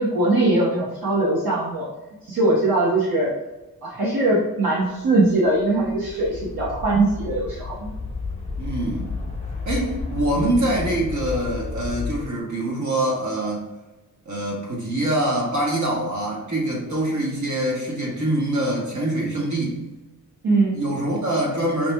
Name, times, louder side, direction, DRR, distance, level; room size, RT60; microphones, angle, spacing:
voice 1, 0.0-1.9 2.2-3.3 3.8-7.9 20.4-20.8, right 2 dB, 75° right, -6 dB, 1.1 m, -21 dB
sound 1, 5.3-12.3, left 4 dB, 20° left, 0.9 m, -32 dB
voice 2, 8.6-9.2 9.6-13.6 14.2-19.8 20.4-21.9, right 1 dB, 55° right, -3 dB, 1.4 m, -24 dB
5.8 x 2.9 x 2.2 m, 1.1 s
cardioid pair, 95°, 35 cm